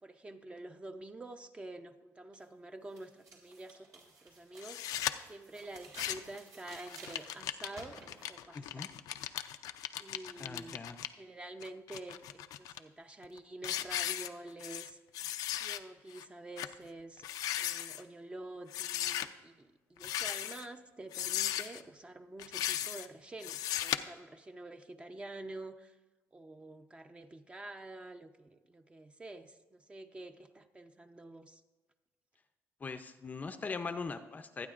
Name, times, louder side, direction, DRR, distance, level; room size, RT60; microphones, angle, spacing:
voice 1, 0.0-4.8 5.3-8.0 8.3-8.9 10.0-10.9 11.2-15.0 15.6-17.3 17.6-25.9 26.3-31.6, right 2 dB, 20° right, 7 dB, 0.6 m, -48 dB
sound 1, 2.3-2.4 2.9-8.4, right 3 dB, 75° right, 3.0 m, -54 dB
sound 2, 4.6-5.1 5.8-6.4 6.7-11.1 11.6-12.8 13.2-13.4 13.6-14.9 15.1-15.8 16.2-16.3 16.6-16.7 17.2-18.0 18.7-19.3 20.0-20.7 21.1-21.8 22.4-23.1 23.4-24.0, left 12 dB, 85° left, 0.4 m, -37 dB
voice 2, 8.5-8.9 10.4-11.0 32.8-34.7, left 4 dB, 25° left, 9 dB, 0.5 m, -40 dB
24.5 x 9.2 x 2.5 m, 1.2 s
cardioid pair, 125°, 6 cm